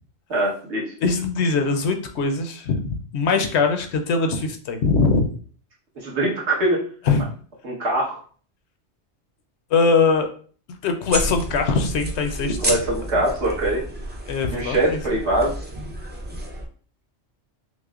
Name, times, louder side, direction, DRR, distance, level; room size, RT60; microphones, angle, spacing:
voice 1, 0.3-0.9 6.0-6.9 7.6-8.2 12.6-13.9 14.5-15.5, right 1 dB, 75° right, -4 dB, 1.6 m, -23 dB
voice 2, 1.0-5.3 7.1-7.2 9.7-10.3 10.8-12.6 14.3-15.0, left 4 dB, 75° left, 6 dB, 0.9 m, -21 dB
sound 1, 11.1-16.7, equal, 15° right, 0.4 m, -31 dB
6.1 x 2.1 x 2.4 m, 0.42 s
omnidirectional pair, 1.2 m